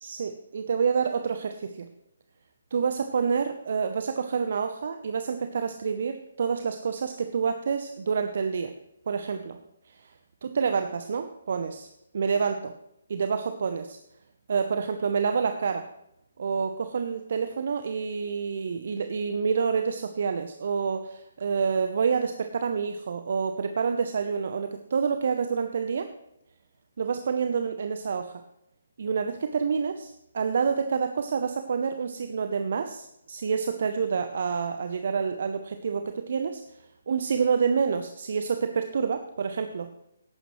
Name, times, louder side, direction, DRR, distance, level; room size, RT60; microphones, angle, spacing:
voice 1, 0.0-1.9 2.7-8.7 9.1-9.6 9.9-10.1 10.4-12.7 13.1-14.0 14.5-15.9 16.4-26.1 27.0-28.4 29.0-36.6 37.1-39.9, right 6 dB, 50° right, 8 dB, 0.8 m, -28 dB
17.0 x 9.1 x 3.2 m, 0.80 s
figure-of-eight pair, 140°, 0 cm